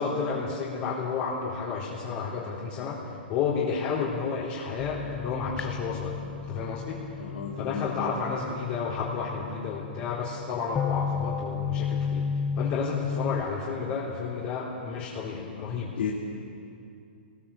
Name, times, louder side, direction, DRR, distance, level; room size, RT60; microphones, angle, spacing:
voice 1, 0.0-6.2 6.5-7.2 7.6-12.3 12.6-15.9, left 5 dB, 35° left, -5 dB, 3.9 m, -31 dB
sound 1, 4.8-13.4, left 6 dB, 15° left, 0.7 m, -33 dB
voice 2, 7.2-7.9 16.0-16.2, left 7 dB, 75° left, -2 dB, 3.0 m, -32 dB
27.0 x 21.0 x 7.1 m, 2.6 s
hypercardioid pair, 150°, 6 cm